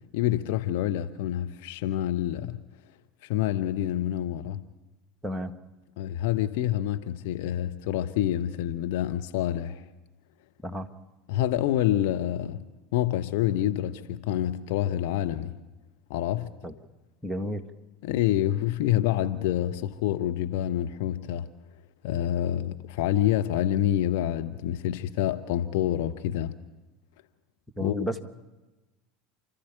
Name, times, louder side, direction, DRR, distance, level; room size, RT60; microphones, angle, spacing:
voice 1, 0.1-2.6 3.2-4.6 6.0-9.8 11.3-12.7 12.9-15.5 16.1-16.5 18.0-21.5 22.0-26.5 27.8-27.9, left 12 dB, 60° left, 1.0 m, -27 dB
voice 2, 5.2-5.5 10.6-10.9 16.6-16.7 17.2-17.6 27.8-28.2, equal, 5° right, 1.7 m, -31 dB
29.5 x 13.5 x 8.5 m
figure-of-eight pair, 75°, 0 cm